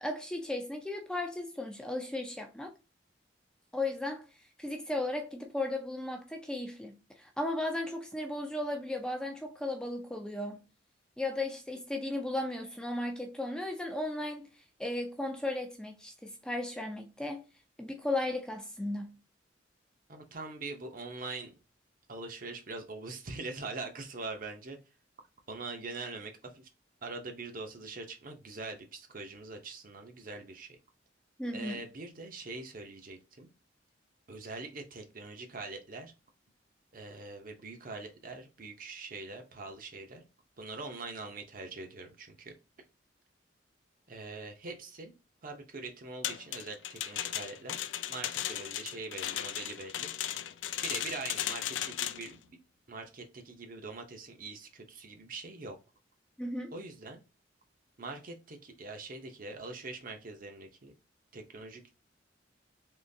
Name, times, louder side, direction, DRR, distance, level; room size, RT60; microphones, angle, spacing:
voice 1, 0.0-2.7 3.7-4.3 4.6-10.7 11.2-14.5 14.8-17.4 17.8-19.2 31.4-31.8 56.4-56.7, left 2 dB, 5° left, 0.4 m, -35 dB
voice 2, 20.1-21.6 22.1-24.8 25.5-26.7 27.0-30.8 31.5-33.5 34.3-36.1 36.9-40.2 40.6-42.5 44.1-45.1 45.4-47.8 48.1-50.1 50.8-52.6 52.9-55.8 56.7-57.2 58.0-60.9 61.3-61.9, right 3 dB, 45° right, 0.7 m, -43 dB
sound 1, 46.2-52.3, left 11 dB, 75° left, 0.3 m, -36 dB
3.7 x 3.0 x 2.7 m
head